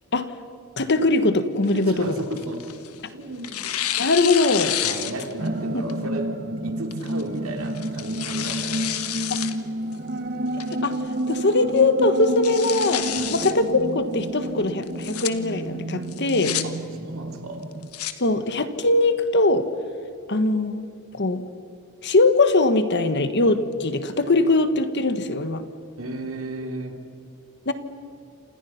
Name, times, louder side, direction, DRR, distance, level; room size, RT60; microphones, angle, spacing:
voice 1, 0.8-2.1 4.0-4.8 5.7-5.8 9.3-9.4 10.8-11.0 11.3-13.0 13.3-16.6 18.2-19.6 20.3-20.9 21.1-21.4 22.0-25.6 27.7-27.8, left 2 dB, 50° left, 10 dB, 1.4 m, -21 dB
Tearing, 1.6-3.0 3.4-5.5 5.9-6.0 6.9-7.2 7.7-9.5 9.9-10.0 10.6-11.0 11.4-11.5 11.8-11.9 12.2-13.5 14.8-15.3 16.1-16.6 17.6-18.1, left 11 dB, 75° left, 1.5 m, -29 dB
voice 2, 1.7-2.8 3.1-3.6 4.8-9.1 13.2-13.4 16.6-16.7 17.0-17.6 26.0-27.0, right 1 dB, 65° right, 4 dB, 3.2 m, -34 dB
sound 1, 5.4-17.9, right 1 dB, 45° right, 1.1 m, -30 dB
28.5 x 27.5 x 5.9 m, 2.6 s
head